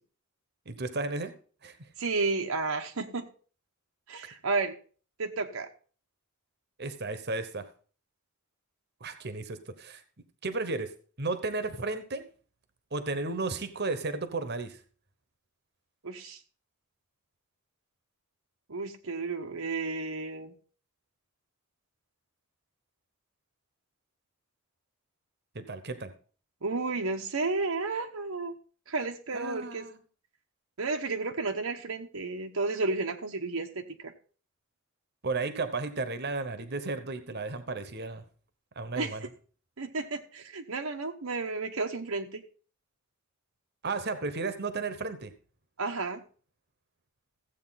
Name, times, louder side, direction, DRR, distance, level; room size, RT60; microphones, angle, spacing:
voice 1, 0.7-1.3 1.6-1.8 6.8-7.6 9.0-10.0 10.4-10.9 11.2-12.2 12.9-14.8 25.5-26.1 29.3-30.0 35.2-38.2 38.8-39.3 43.8-45.3, right 3 dB, 50° right, 10 dB, 1.1 m, -33 dB
voice 2, 2.0-3.3 4.1-4.7 5.2-5.7 16.0-16.4 18.7-20.5 26.6-28.5 28.9-29.9 30.8-34.1 39.0-39.2 39.8-42.4 45.8-46.2, right 3 dB, 75° right, 4 dB, 1.1 m, -32 dB
15.0 x 8.3 x 4.1 m, 0.41 s
head